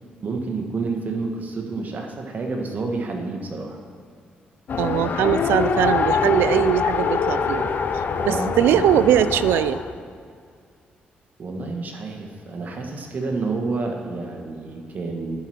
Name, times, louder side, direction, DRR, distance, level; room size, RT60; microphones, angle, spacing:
voice 1, 0.2-3.8 8.2-8.8 11.4-15.4, right 3 dB, 50° right, 3 dB, 1.3 m, -29 dB
Race car auto racing, 4.7-9.9, left 5 dB, 55° left, 0.6 m, -24 dB
voice 2, 4.8-7.7 8.2-9.8, right 11 dB, 85° right, 14 dB, 0.3 m, -20 dB
10.5 x 4.7 x 5.9 m, 2.2 s
cardioid pair, 70°, 4 cm